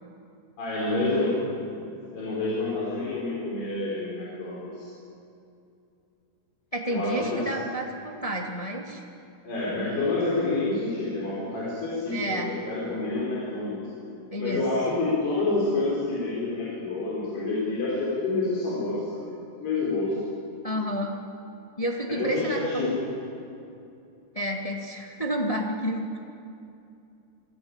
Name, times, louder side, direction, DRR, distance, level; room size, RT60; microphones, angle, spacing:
voice 1, 0.6-1.5 1.9-4.9 6.9-7.5 9.4-13.8 14.4-19.3 19.6-20.2 22.1-23.1, left 2 dB, 65° left, -7 dB, 7.0 m, -28 dB
voice 2, 6.7-9.0 12.1-12.5 14.3-14.6 20.6-21.1 21.8-22.9 24.3-26.2, right 1 dB, 45° left, 0 dB, 0.4 m, -30 dB
27.5 x 18.5 x 8.9 m, 2.6 s
omnidirectional pair, 5.0 m